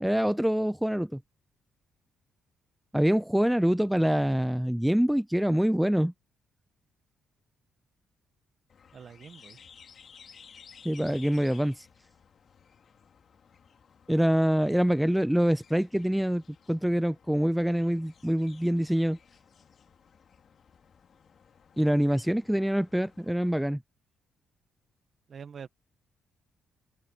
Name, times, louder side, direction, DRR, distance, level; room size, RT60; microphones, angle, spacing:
voice 1, 0.0-1.2 2.9-6.1 10.9-11.9 14.1-16.4 16.7-19.2 21.8-23.8, equal, 5° right, 0.3 m, -25 dB
sound 1, 8.7-23.5, left 7 dB, 50° left, 3.0 m, -56 dB
voice 2, 8.9-9.6 25.3-25.7, right 7 dB, 50° right, 1.4 m, -45 dB
open air
cardioid pair, 90°, 0 cm